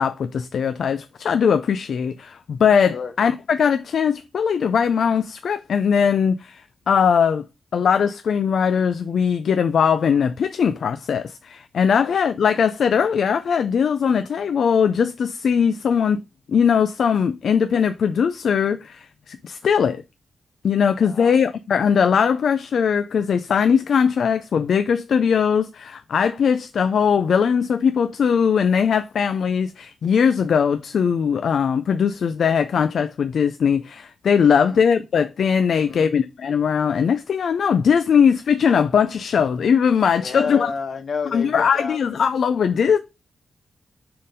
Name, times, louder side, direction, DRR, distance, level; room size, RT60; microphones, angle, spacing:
voice 1, 0.0-7.4 7.7-16.2 16.5-20.0 20.6-40.7 41.3-43.0, left 7 dB, 70° left, 0.5 m, -20 dB
voice 2, 21.0-21.4 34.6-34.8 35.7-36.1 40.1-42.0, left 5 dB, 55° left, 1.2 m, -31 dB
6.5 x 3.8 x 5.2 m
wide cardioid pair, 155°, 0 cm